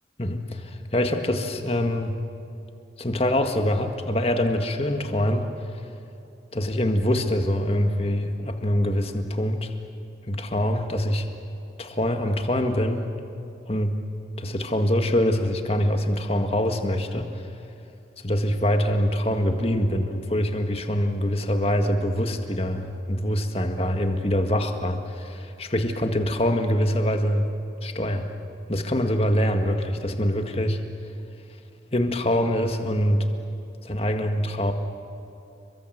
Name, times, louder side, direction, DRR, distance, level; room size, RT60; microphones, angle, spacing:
voice 1, 0.2-2.1 3.0-5.5 6.5-9.7 10.3-11.3 11.8-13.1 13.7-13.9 14.4-17.3 18.2-27.5 27.8-28.3 28.7-30.8 31.9-33.3 33.8-34.7, equal, 30° left, 5 dB, 1.8 m, -24 dB
28.5 x 23.5 x 8.1 m, 2.7 s
head